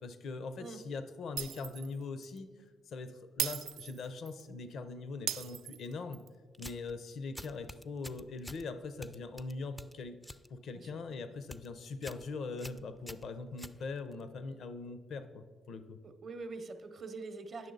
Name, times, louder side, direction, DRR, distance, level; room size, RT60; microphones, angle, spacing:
voice 1, 0.0-2.5 2.9-6.2 6.6-10.2 10.5-16.0, left 4 dB, 65° left, 11 dB, 0.6 m, -41 dB
Shatter, 1.4-1.9 2.2-2.4 3.4-4.4 5.3-6.3, right 10 dB, 85° right, 0.3 m, -37 dB
sound 1, 6.5-6.9 7.4-8.7 9.0-10.5 10.8-11.1 11.4-11.7 12.0-12.3 12.6-14.2, left 1 dB, 5° left, 0.3 m, -48 dB
voice 2, 16.0-17.7, right 3 dB, 50° right, 8 dB, 0.7 m, -44 dB
9.1 x 6.2 x 3.9 m, 1.5 s
cardioid pair, 90°, 0 cm